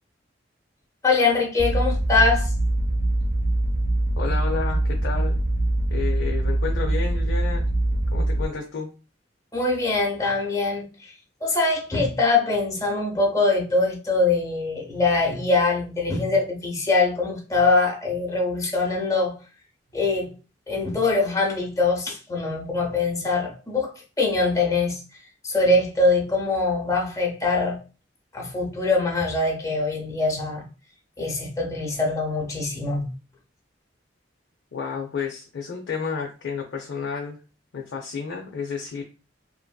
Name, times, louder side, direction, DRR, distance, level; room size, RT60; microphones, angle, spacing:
voice 1, 1.0-2.5 9.5-11.1 11.4-19.4 19.9-20.3 20.7-25.0 25.4-27.8 28.3-30.6 31.2-33.1, left 3 dB, 20° left, 0.7 m, -23 dB
sound 1, 1.6-8.5, right 1 dB, 45° right, 0.5 m, -23 dB
voice 2, 4.2-5.4 5.9-7.6 8.1-8.9 34.7-37.4 37.7-39.0, left 5 dB, 70° left, 0.5 m, -31 dB
3.0 x 2.6 x 2.2 m
head